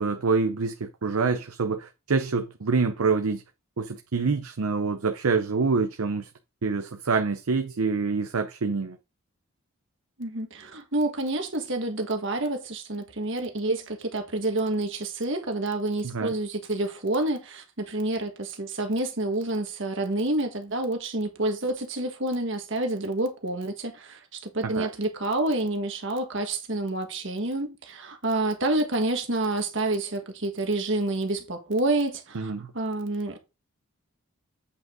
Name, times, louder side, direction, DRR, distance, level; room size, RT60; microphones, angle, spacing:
voice 1, 0.0-3.4 3.8-6.3 6.6-9.0 16.0-16.3 24.6-24.9 32.3-32.7, right 4 dB, 80° right, 0.7 m, -26 dB
voice 2, 10.2-33.4, right 2 dB, 55° right, 1.5 m, -28 dB
8.3 x 5.4 x 3.7 m
head